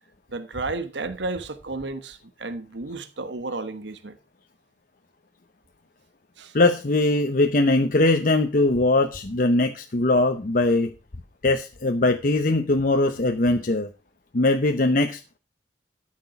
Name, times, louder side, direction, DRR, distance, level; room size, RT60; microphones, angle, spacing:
voice 1, 0.3-4.2 6.4-6.5, right 3 dB, 85° right, 1.1 m, -32 dB
voice 2, 6.5-10.9 11.4-13.9 14.3-15.4, left 2 dB, 50° left, 0.8 m, -21 dB
13.0 x 6.1 x 5.9 m
head